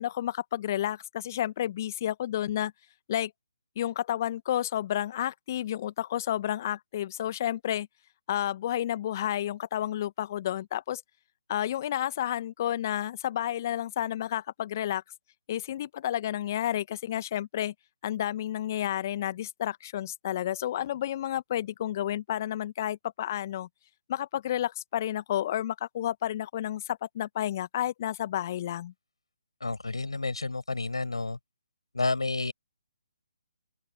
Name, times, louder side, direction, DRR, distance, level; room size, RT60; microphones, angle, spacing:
voice 1, 0.0-2.7 3.1-3.3 3.8-7.9 8.3-11.0 11.5-15.0 15.5-17.7 18.0-23.7 24.1-28.9, left 12 dB, 35° left, 1.2 m, -31 dB
voice 2, 29.6-31.4 31.9-32.5, left 3 dB, 75° left, 6.8 m, -30 dB
open air
figure-of-eight pair, 140°, 3 cm